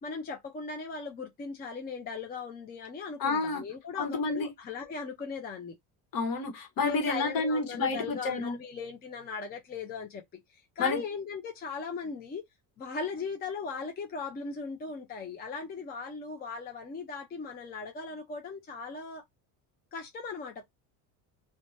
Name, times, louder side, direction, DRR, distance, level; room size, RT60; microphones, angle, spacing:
voice 1, 0.0-5.8 6.8-10.2 10.8-12.4 12.8-19.2 19.9-20.6, left 5 dB, 25° left, 0.5 m, -38 dB
voice 2, 3.2-3.6 3.9-4.5 6.1-8.5 10.8-11.0, left 3 dB, 55° left, 1.1 m, -29 dB
2.5 x 2.2 x 3.0 m
cardioid pair, 130°, 40 cm